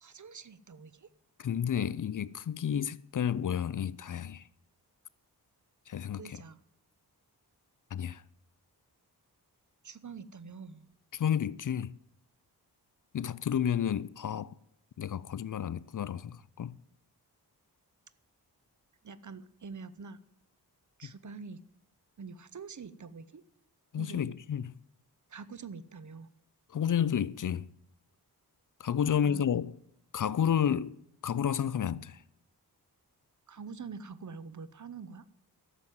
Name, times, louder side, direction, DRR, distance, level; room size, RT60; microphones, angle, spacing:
voice 1, 0.0-1.1 6.2-6.6 9.8-10.9 19.0-20.2 21.0-21.6 22.2-23.4 23.9-24.3 25.3-26.3 29.2-29.5 33.5-35.3, right 5 dB, 50° right, 0.9 m, -45 dB
voice 2, 1.4-4.5 5.9-6.4 7.9-8.2 11.1-12.0 13.1-14.5 15.0-16.8 23.9-24.7 26.7-27.7 28.8-29.8 30.1-31.0 31.2-32.2, left 8 dB, 50° left, 0.5 m, -31 dB
12.0 x 7.3 x 9.3 m
cardioid pair, 60°, 39 cm